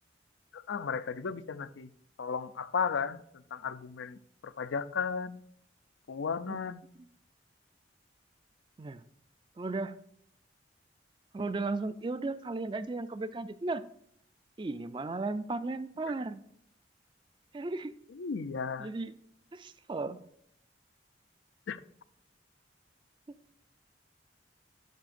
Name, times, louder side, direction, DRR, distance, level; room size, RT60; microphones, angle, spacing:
voice 1, 0.5-1.9 2.2-5.4 6.1-6.8 18.1-18.9 21.7-21.8, left 6 dB, 85° left, 0.5 m, -35 dB
voice 2, 9.6-10.0 11.3-13.8 14.6-16.4 17.5-17.9 18.8-19.1 19.5-20.2, right 3 dB, 25° right, 0.3 m, -35 dB
12.0 x 5.6 x 2.6 m
head